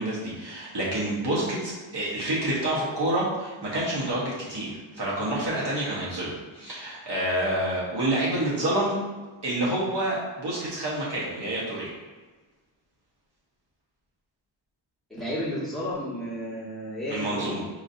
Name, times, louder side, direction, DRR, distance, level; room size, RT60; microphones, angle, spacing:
voice 1, 0.0-9.0 9.4-11.9 17.1-17.6, right 1 dB, 55° right, -6 dB, 1.1 m, -28 dB
voice 2, 15.1-17.6, equal, ahead, -8 dB, 1.2 m, -32 dB
4.8 x 2.6 x 2.6 m, 1.3 s
wide cardioid pair, 95°, 48 cm